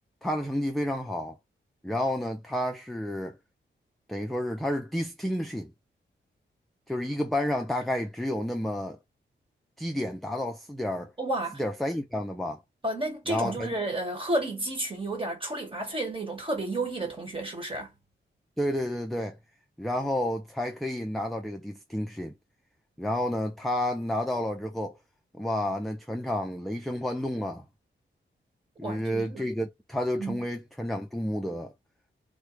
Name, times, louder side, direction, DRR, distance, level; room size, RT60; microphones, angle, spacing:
voice 1, 0.2-1.4 1.8-3.4 4.1-5.7 6.9-9.0 9.8-11.1 11.6-12.6 13.3-13.7 18.6-19.4 19.8-22.3 23.0-24.9 25.3-27.6 28.8-31.7, left 1 dB, ahead, 0.3 m, -30 dB
voice 2, 11.2-11.6 12.8-17.9 28.8-29.5 30.2-30.4, right 2 dB, 25° right, 1.4 m, -31 dB
3.1 x 2.1 x 3.1 m
wide cardioid pair, 155°, 20 cm